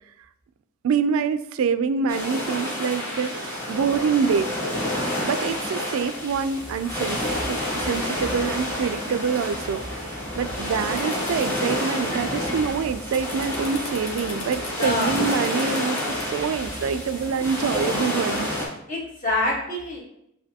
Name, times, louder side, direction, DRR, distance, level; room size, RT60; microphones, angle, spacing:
voice 1, 0.8-4.5 5.2-9.9 10.4-18.5, right 6 dB, 75° right, 13 dB, 0.3 m, -26 dB
sound 1, 2.1-18.7, left 1 dB, 10° left, 1.2 m, -29 dB
sound 2, 11.0-11.4 11.9-16.2, left 4 dB, 80° left, 1.0 m, -40 dB
voice 2, 14.8-15.1 18.9-20.0, left 2 dB, 40° left, -3 dB, 1.2 m, -26 dB
7.3 x 2.6 x 2.8 m, 0.79 s
head